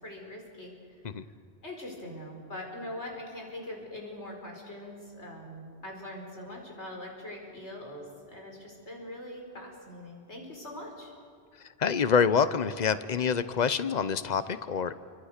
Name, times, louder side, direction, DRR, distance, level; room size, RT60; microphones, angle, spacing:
voice 1, 0.0-0.7 1.1-1.2 1.6-11.1, left 1 dB, 85° left, 1 dB, 5.4 m, -42 dB
voice 2, 11.8-14.9, left 6 dB, 40° left, 13 dB, 1.0 m, -26 dB
29.0 x 24.5 x 6.7 m, 2.2 s
omnidirectional pair, 1.1 m